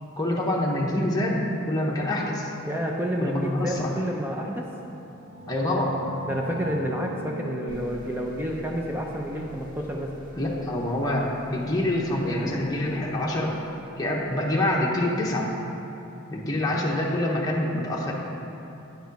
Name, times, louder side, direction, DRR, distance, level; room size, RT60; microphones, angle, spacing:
voice 1, 0.2-2.5 3.2-3.9 5.5-6.0 10.3-13.5 14.0-15.5 16.3-18.1, left 1 dB, 20° left, -3 dB, 0.8 m, -26 dB
voice 2, 2.6-4.7 6.3-10.1, equal, 10° right, -1 dB, 0.4 m, -29 dB
sound 1, 4.9-10.4, equal, 75° right, 1.5 m, -41 dB
sound 2, 7.7-15.2, right 1 dB, 35° right, 1.9 m, -50 dB
9.1 x 4.9 x 5.2 m, 2.8 s
head